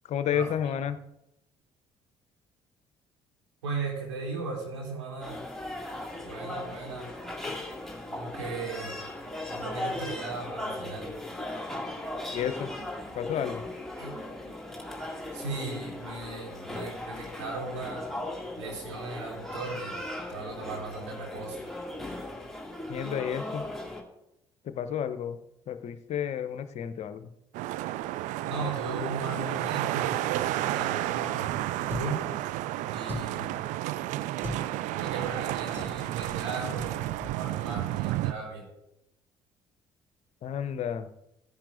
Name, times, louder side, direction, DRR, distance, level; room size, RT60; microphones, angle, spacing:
voice 1, 0.1-1.0 12.3-12.7 13.1-13.6 22.9-23.6 24.6-25.4 25.7-27.3 40.4-41.1, left 9 dB, 50° left, 11 dB, 0.8 m, -31 dB
voice 2, 3.6-5.4 6.2-7.1 8.1-9.0 9.5-11.1 14.0-14.1 15.3-18.1 18.6-20.0 20.3-21.6 28.4-32.2 32.9-33.6 34.9-37.0 37.3-38.7, right 3 dB, 80° right, -2 dB, 2.8 m, -37 dB
sound 1, 5.2-24.0, left 1 dB, 5° left, 2.2 m, -38 dB
sound 2, 27.5-38.3, right 15 dB, 60° right, 0.4 m, -31 dB
sound 3, 31.9-32.2 33.0-33.5 34.4-34.6 35.7-36.0 36.8-36.9 37.2-37.4 37.7-37.9, left 1 dB, 15° right, 2.4 m, -37 dB
16.0 x 10.5 x 2.5 m, 0.84 s
figure-of-eight pair, 50°, 15 cm